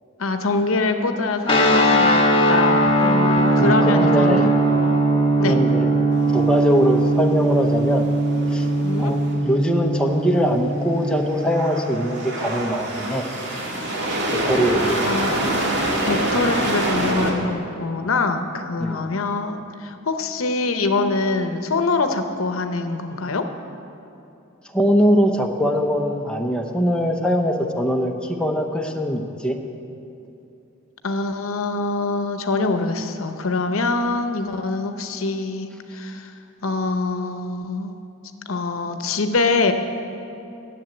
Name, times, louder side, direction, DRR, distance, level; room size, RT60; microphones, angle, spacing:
voice 1, 0.2-2.2 2.5-4.5 5.4-5.6 8.8-9.1 15.0-23.5 31.0-36.3 36.6-37.9 38.5-39.7, left 3 dB, 80° left, 7 dB, 0.8 m, -24 dB
sound 1, 1.5-11.8, right 1 dB, 30° left, 1.3 m, -19 dB
voice 2, 3.6-4.5 5.4-5.9 6.3-8.1 8.5-8.7 9.0-13.2 14.3-15.1 18.8-19.0 24.7-29.6, equal, 5° left, 1 dB, 0.8 m, -22 dB
sound 2, 6.1-9.3 11.3-17.3, right 1 dB, 60° right, 1.8 m, -26 dB
11.0 x 7.4 x 8.9 m, 2.7 s
head